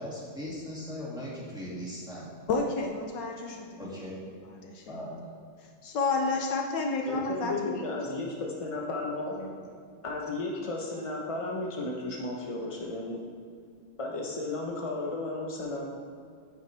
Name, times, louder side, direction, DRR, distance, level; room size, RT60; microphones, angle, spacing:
voice 1, 0.0-2.3 3.8-4.3 4.9-5.4 7.1-7.2 9.3-9.4, left 1 dB, ahead, -7 dB, 2.1 m, -39 dB
voice 2, 2.5-3.8 4.5-5.0 5.8-7.8, left 3 dB, 70° left, 3 dB, 1.4 m, -30 dB
voice 3, 7.1-9.3 10.0-13.2 14.0-15.8, left 2 dB, 40° left, -2 dB, 0.4 m, -34 dB
9.4 x 9.0 x 3.4 m, 2.2 s
omnidirectional pair, 2.1 m